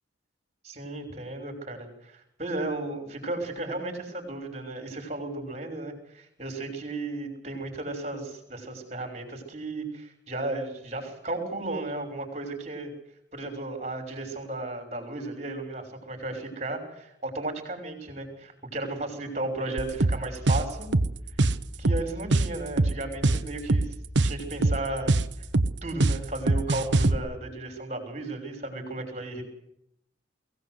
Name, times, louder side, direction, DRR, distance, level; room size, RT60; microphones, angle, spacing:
voice 1, 0.6-12.9 13.3-20.9 21.8-23.9 24.2-25.1 25.8-29.4, right 2 dB, 35° right, 3 dB, 5.8 m, -34 dB
sound 1, 19.8-27.2, right 2 dB, 70° right, 1.1 m, -23 dB
22.5 x 17.0 x 8.0 m, 0.76 s
head